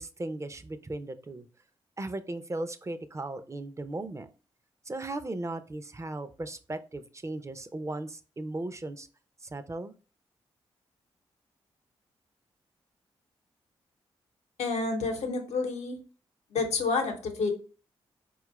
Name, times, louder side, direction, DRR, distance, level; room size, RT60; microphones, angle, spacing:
voice 1, 0.0-1.5 2.0-4.3 4.9-9.1 9.4-9.9, right 2 dB, 25° right, 10 dB, 0.5 m, -37 dB
voice 2, 14.6-16.0 16.5-17.5, left 4 dB, 75° left, 4 dB, 0.8 m, -29 dB
4.4 x 2.4 x 3.0 m, 0.38 s
supercardioid pair, 40°, 11 cm